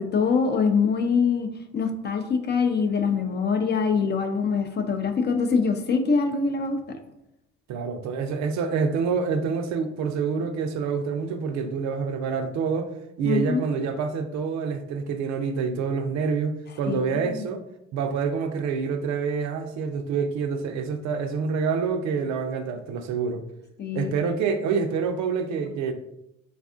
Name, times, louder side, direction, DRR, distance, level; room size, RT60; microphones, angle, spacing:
voice 1, 0.0-1.5 1.7-7.0 13.3-13.6 16.9-17.4 23.8-24.1, left 5 dB, 35° left, 5 dB, 0.4 m, -24 dB
voice 2, 7.7-12.9 13.2-17.6 17.9-23.5 23.9-25.9, right 5 dB, 60° right, 7 dB, 0.5 m, -27 dB
3.4 x 2.4 x 2.4 m, 0.83 s
supercardioid pair, 70°, 31 cm